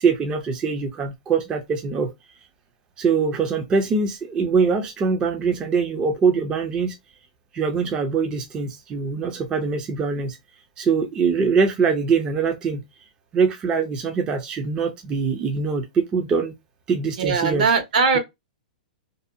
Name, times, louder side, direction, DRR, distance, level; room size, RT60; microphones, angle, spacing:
voice 1, 0.0-2.1 3.0-6.9 7.5-10.4 10.8-12.8 13.3-16.5 16.9-17.7, right 5 dB, 20° right, 0.4 m, -23 dB
voice 2, 17.2-18.2, right 5 dB, 65° right, 0.9 m, -20 dB
2.6 x 2.0 x 2.5 m
hypercardioid pair, 150°, 5 cm